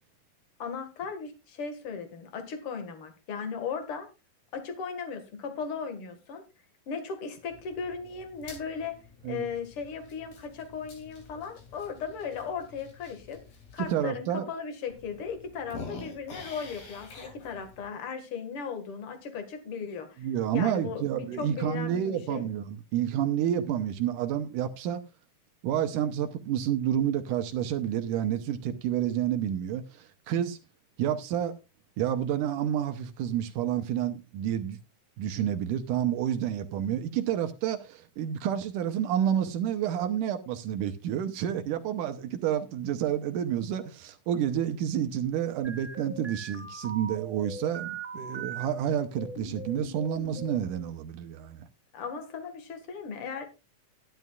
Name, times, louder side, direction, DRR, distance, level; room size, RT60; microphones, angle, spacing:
voice 1, 0.6-4.1 4.5-6.4 6.9-9.0 9.2-13.4 13.7-22.4 51.9-53.4, left 6 dB, 45° left, 2.2 m, -37 dB
sound 1, 7.5-13.9 14.5-14.6 14.9-17.9, left 3 dB, 75° left, 4.5 m, -48 dB
voice 2, 13.8-14.5 20.2-25.0 25.6-30.6 31.0-31.5 32.0-34.8 35.2-51.7, right 10 dB, 75° right, 2.2 m, -29 dB
sound 2, 45.6-48.6 49.1-50.7, right 3 dB, 15° right, 2.6 m, -40 dB
13.5 x 11.0 x 2.4 m
omnidirectional pair, 4.1 m